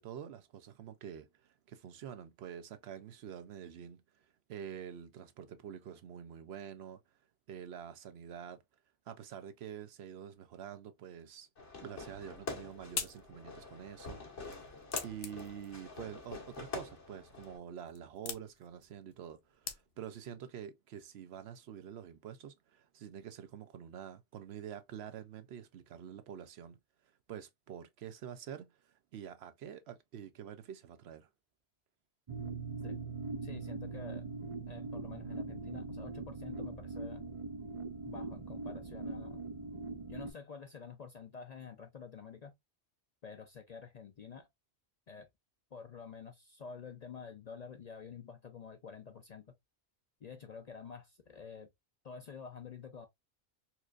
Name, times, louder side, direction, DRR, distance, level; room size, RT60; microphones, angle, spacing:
voice 1, 0.0-4.0 4.5-7.0 7.5-8.6 9.1-11.5 11.8-14.5 15.0-26.8 27.3-31.3, right 9 dB, 70° right, 0.8 m, -47 dB
Fireworks, 11.6-17.6, left 3 dB, 85° left, 1.9 m, -46 dB
sound 1, 12.3-20.3, left 7 dB, 70° left, 0.9 m, -46 dB
sound 2, 32.3-40.3, right 3 dB, 50° right, 0.4 m, -41 dB
voice 2, 33.4-34.3 34.7-37.2 38.0-39.4 40.1-42.5 43.2-44.5 45.1-45.3 45.7-49.5 50.2-51.7 52.0-53.1, left 6 dB, 50° left, 0.5 m, -49 dB
4.3 x 2.5 x 2.4 m
omnidirectional pair, 1.2 m